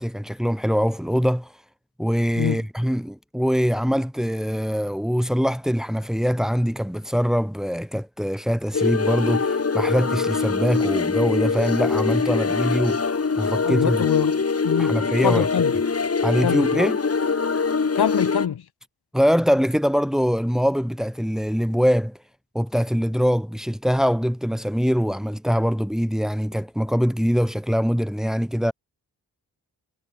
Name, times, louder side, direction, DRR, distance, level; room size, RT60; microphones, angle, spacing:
voice 1, 0.0-1.5 2.0-14.0 14.8-15.5 16.2-17.0 19.1-22.2 22.5-28.7, equal, ahead, 6.5 m, -23 dB
sound 1, 8.7-18.5, left 4 dB, 40° left, 2.6 m, -23 dB
voice 2, 13.6-14.4 14.6-15.7 16.4-16.7 17.9-18.6, left 8 dB, 90° left, 4.7 m, -24 dB
cardioid pair, 80°, 37 cm